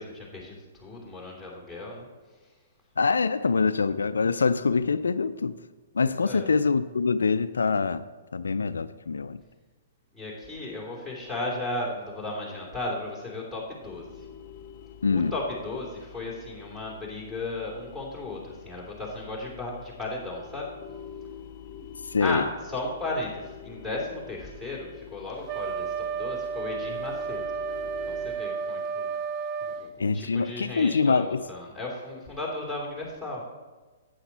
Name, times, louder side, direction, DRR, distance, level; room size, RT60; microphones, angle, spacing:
voice 1, 0.0-2.1 6.0-6.5 10.1-14.2 15.1-20.7 22.2-27.4 28.0-29.1 29.6-33.4, left 2 dB, ahead, -3 dB, 3.0 m, -35 dB
voice 2, 3.0-5.5 5.9-8.0 8.3-9.4 15.0-15.3 22.0-22.4 30.0-31.4, left 4 dB, 85° left, 12 dB, 0.4 m, -24 dB
sound 1, 13.8-28.4, left 8 dB, 40° left, 0.8 m, -47 dB
Wind instrument woodwind instrument, 25.5-29.9, right 6 dB, 30° right, 0.4 m, -32 dB
11.5 x 8.6 x 4.1 m, 1.3 s
hypercardioid pair, 125°, 0 cm